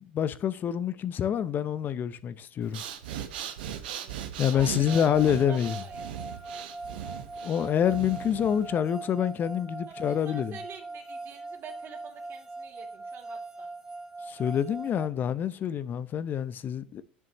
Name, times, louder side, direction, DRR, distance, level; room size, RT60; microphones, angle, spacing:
voice 1, 0.1-2.8 4.4-5.8 7.4-10.6 14.3-17.0, left 9 dB, 35° left, 0.7 m, -27 dB
Breathing, 2.6-8.7, right 9 dB, 75° right, 1.3 m, -38 dB
voice 2, 3.9-5.2 5.5-6.0 9.9-13.7, right 7 dB, 45° right, 2.8 m, -47 dB
sound 1, 4.9-15.1, right 3 dB, 10° right, 0.7 m, -41 dB
10.0 x 7.2 x 3.1 m
hypercardioid pair, 85°, 5 cm